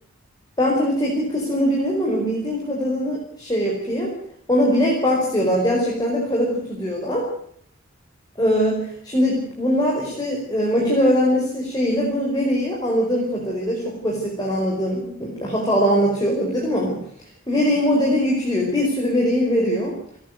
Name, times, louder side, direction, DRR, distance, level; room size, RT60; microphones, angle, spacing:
voice 1, 0.6-4.2 4.5-7.3 8.4-17.0 17.5-20.0, equal, 20° left, -2 dB, 5.3 m, -21 dB
29.5 x 11.0 x 9.5 m, 0.66 s
head